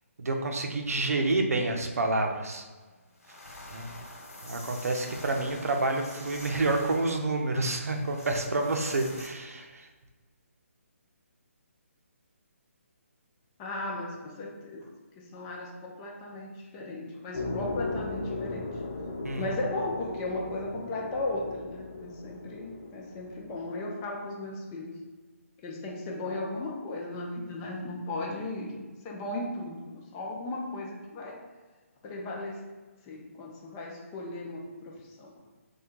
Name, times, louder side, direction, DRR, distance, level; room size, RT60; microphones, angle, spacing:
voice 1, 0.2-2.6 3.7-3.9 4.4-9.9 19.2-19.4, right 2 dB, 85° right, 3 dB, 0.5 m, -28 dB
sound 1, 2.8-2.9 3.2-9.3, left 1 dB, 90° left, 0.9 m, -46 dB
voice 2, 13.6-14.9 15.2-18.6 19.4-25.0 25.6-28.8 29.0-31.5 32.0-32.6 33.0-34.9 35.2-35.3, left 2 dB, 20° left, -1 dB, 0.3 m, -36 dB
sound 2, 17.3-23.6, left 2 dB, 60° left, 0.8 m, -37 dB
3.2 x 2.2 x 3.1 m, 1.3 s
hypercardioid pair, 155°, 8 cm